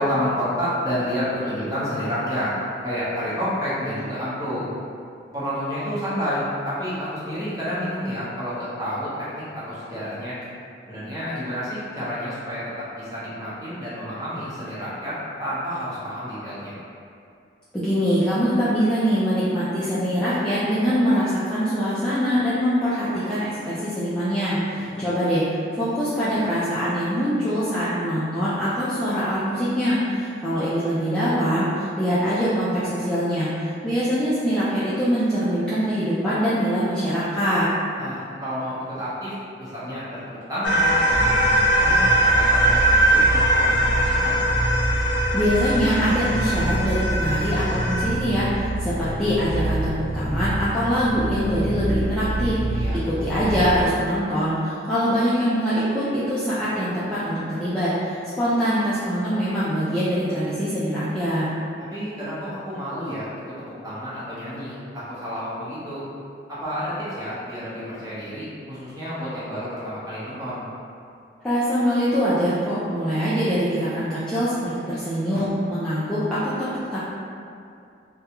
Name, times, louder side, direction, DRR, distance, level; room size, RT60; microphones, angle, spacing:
voice 1, 0.0-2.5 2.8-4.7 5.3-10.3 10.9-12.6 13.0-16.7 24.7-25.0 38.0-41.5 41.8-44.4 52.8-53.0 61.9-63.3 63.6-66.0 66.5-70.7, equal, 20° right, -11 dB, 0.9 m, -30 dB
voice 2, 17.7-25.4 25.8-37.7 45.3-61.5 71.4-77.0, equal, 5° left, -13 dB, 0.4 m, -23 dB
sound 1, 40.6-48.1, right 1 dB, 80° left, 0.5 m, -21 dB
sound 2, 41.1-53.9, right 1 dB, 55° right, 0.6 m, -27 dB
3.4 x 2.3 x 2.9 m, 2.4 s
head